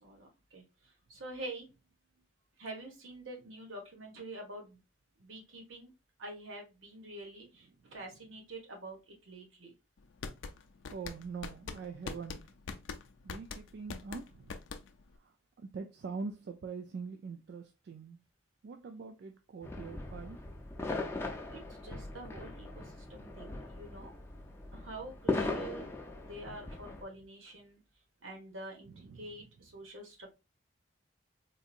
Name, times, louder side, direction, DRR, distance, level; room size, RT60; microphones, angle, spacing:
voice 1, 0.0-1.7 2.6-4.8 5.2-5.9 6.2-9.7 21.5-24.1 24.7-25.9 26.2-27.8 28.2-30.3, right 2 dB, 80° right, 1.2 m, -47 dB
sound 1, 10.0-15.2, left 5 dB, 75° left, 0.4 m, -43 dB
voice 2, 10.9-12.4 13.2-14.5 15.2-15.3 15.6-18.2 18.6-20.6 28.9-29.2, right 5 dB, 55° right, 0.3 m, -43 dB
sound 2, 19.6-27.0, left 2 dB, 10° left, 0.5 m, -39 dB
3.9 x 2.7 x 2.4 m
head